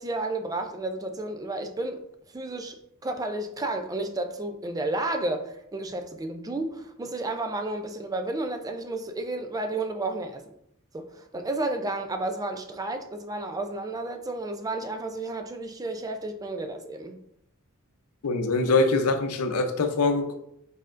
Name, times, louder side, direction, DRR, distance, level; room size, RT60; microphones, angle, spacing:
voice 1, 0.0-2.1 2.3-2.8 3.0-10.4 10.9-17.2, right 2 dB, 15° right, 0.4 m, -32 dB
voice 2, 18.2-20.4, left 3 dB, 85° left, 0.6 m, -23 dB
5.0 x 4.3 x 2.5 m
head